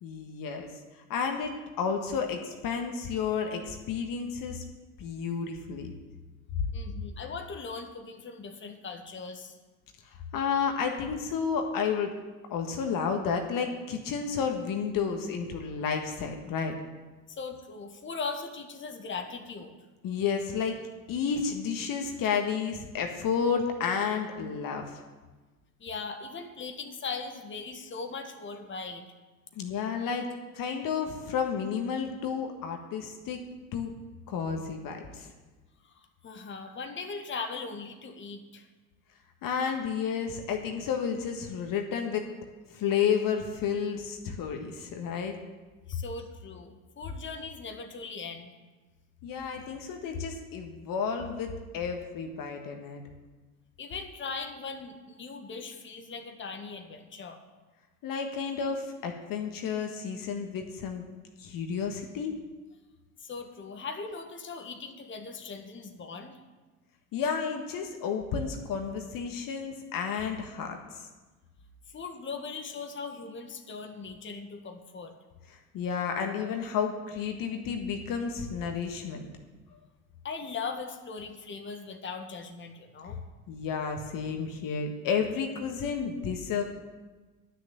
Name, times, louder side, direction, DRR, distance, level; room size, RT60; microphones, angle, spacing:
voice 1, 0.0-4.6 5.0-5.9 10.0-12.1 12.5-16.7 20.0-20.8 21.1-25.0 29.5-30.3 30.5-33.4 33.7-33.9 34.3-35.3 39.4-42.3 42.7-45.3 49.2-53.0 58.0-61.0 61.4-62.3 67.1-71.1 75.5-79.3 83.5-86.6, left 6 dB, 45° left, 4 dB, 1.5 m, -31 dB
voice 2, 6.7-9.6 17.3-19.7 25.8-29.0 35.9-38.7 45.9-48.5 53.8-57.4 63.2-66.3 71.9-75.1 80.2-83.2, left 4 dB, 25° left, 4 dB, 1.6 m, -39 dB
10.5 x 6.4 x 9.0 m, 1.3 s
hypercardioid pair, 70°, 45 cm